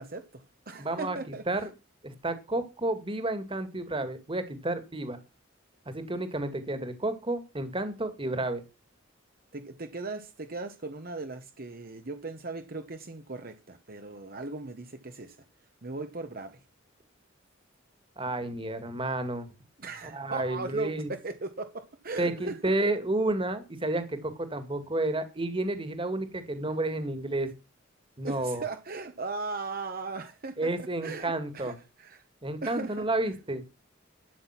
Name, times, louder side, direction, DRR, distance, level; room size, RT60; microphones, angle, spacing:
voice 1, 0.0-1.7 9.5-15.4 15.8-16.6 19.8-22.7 28.2-32.2 32.6-33.1, right 3 dB, 50° right, 1.3 m, -38 dB
voice 2, 0.8-1.2 1.5-1.7 2.0-5.2 5.9-8.6 18.2-19.5 20.1-21.1 22.2-27.5 28.2-28.6 30.6-31.8 32.4-33.6, right 2 dB, 25° right, 2.2 m, -31 dB
12.5 x 9.0 x 5.9 m
head